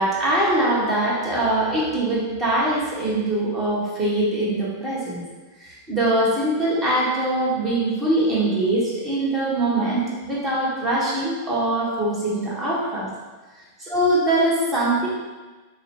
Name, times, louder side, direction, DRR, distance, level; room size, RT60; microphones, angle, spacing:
voice 1, 0.0-5.2 5.6-13.1 13.8-15.1, right 1 dB, 20° right, -7 dB, 1.2 m, -22 dB
5.5 x 2.1 x 2.8 m, 1.3 s
figure-of-eight pair, 90°, 0 cm